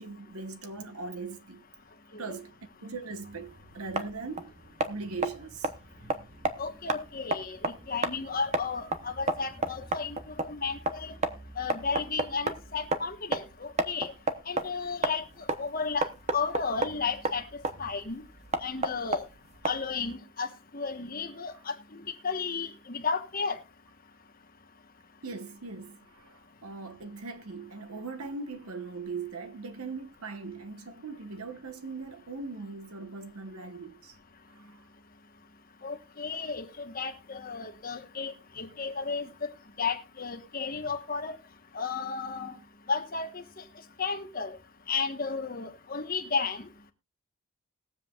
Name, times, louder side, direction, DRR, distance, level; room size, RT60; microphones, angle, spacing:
voice 1, 0.0-1.6 2.1-2.5 2.8-4.5 4.9-5.7 6.0-6.6 25.2-34.2 34.5-34.8, right 4 dB, 85° right, 1.2 m, -40 dB
sound 1, 3.3-20.1, right 2 dB, 30° right, 0.9 m, -33 dB
voice 2, 6.6-10.2 10.4-11.2 11.6-14.1 14.5-15.2 15.6-16.1 16.3-17.4 17.8-18.2 18.6-19.2 19.6-23.6 35.8-39.5 39.8-41.4 41.7-42.5 42.9-43.4 44.0-44.6 44.9-46.6, left 5 dB, 40° left, 1.3 m, -33 dB
20.5 x 7.6 x 2.4 m
head